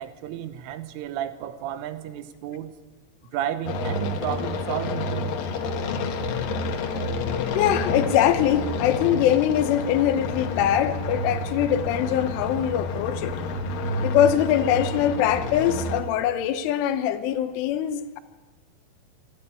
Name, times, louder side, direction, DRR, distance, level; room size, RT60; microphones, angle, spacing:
voice 1, 0.0-2.7 3.3-5.3, right 11 dB, 85° right, 12 dB, 3.6 m, -32 dB
sound 1, 3.7-16.0, left 2 dB, 60° left, 2.6 m, -29 dB
voice 2, 7.5-13.3 14.0-18.2, left 10 dB, 85° left, 10 dB, 3.5 m, -23 dB
26.0 x 10.5 x 9.8 m, 1.3 s
omnidirectional pair, 5.5 m